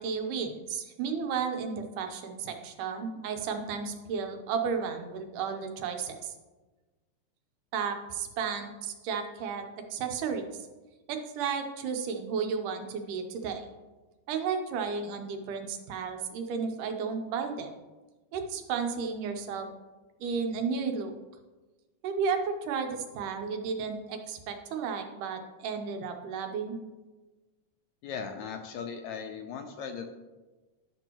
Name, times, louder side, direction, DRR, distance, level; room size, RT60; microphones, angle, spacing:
voice 1, 0.0-6.3 7.7-9.7 9.9-10.4 11.1-13.7 14.3-17.7 18.3-19.7 20.2-21.1 22.0-26.8, right 6 dB, 85° right, 5 dB, 2.4 m, -33 dB
voice 2, 28.0-30.1, left 6 dB, 80° left, 5 dB, 1.7 m, -38 dB
11.5 x 6.1 x 3.0 m, 1.2 s
omnidirectional pair, 3.6 m